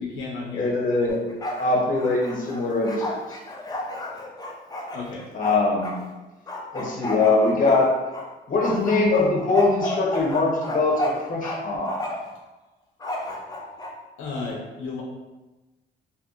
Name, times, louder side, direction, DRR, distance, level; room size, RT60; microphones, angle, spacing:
voice 1, 0.0-0.7 4.9-5.3 14.2-15.0, left 4 dB, 80° left, -2 dB, 0.5 m, -33 dB
voice 2, 0.5-1.2 1.6-3.4 5.3-5.9 6.7-7.9 8.5-12.0, left 3 dB, 45° left, -2 dB, 0.9 m, -22 dB
Bark, 1.1-1.7 2.0-6.0 6.5-8.3 8.6-11.6 11.9-12.3 13.0-13.9, left 1 dB, 20° left, 0.4 m, -31 dB
2.8 x 2.6 x 2.4 m, 1.1 s
cardioid pair, 90°, 20 cm